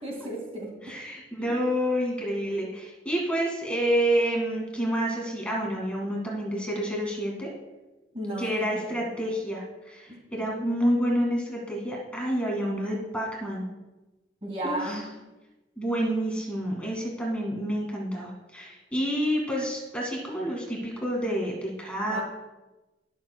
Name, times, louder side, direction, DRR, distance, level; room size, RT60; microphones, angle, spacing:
voice 1, 0.0-0.7 1.4-1.6 8.1-9.2 10.1-10.2 14.4-15.1 22.0-22.2, right 1 dB, 35° right, 0 dB, 2.1 m, -35 dB
voice 2, 0.8-7.5 8.4-13.7 14.6-15.0 15.8-22.2, equal, 5° left, -2 dB, 1.9 m, -28 dB
19.0 x 7.1 x 2.2 m, 1.1 s
head